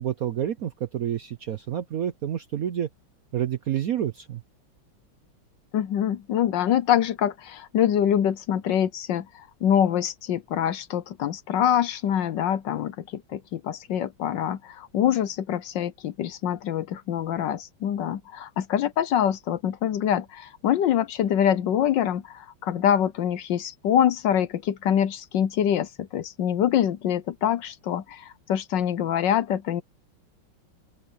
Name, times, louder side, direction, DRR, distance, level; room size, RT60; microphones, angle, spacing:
voice 1, 0.0-2.9 3.3-4.4, right 10 dB, 65° right, 0.9 m, -29 dB
voice 2, 5.7-29.8, left 10 dB, 65° left, 1.3 m, -25 dB
open air
omnidirectional pair, 2.3 m